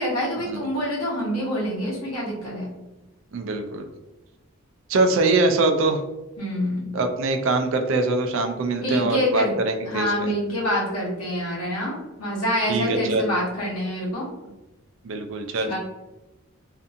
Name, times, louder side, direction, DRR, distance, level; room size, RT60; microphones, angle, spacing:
voice 1, 0.0-2.7 6.4-6.9 8.8-9.5 9.9-14.3 15.6-15.8, equal, 85° left, -5 dB, 1.0 m, -26 dB
voice 2, 3.3-3.9 4.9-6.0 6.9-10.3 12.7-13.3 15.0-15.8, right 3 dB, 60° right, 5 dB, 0.3 m, -23 dB
2.6 x 2.5 x 2.4 m, 1.0 s
head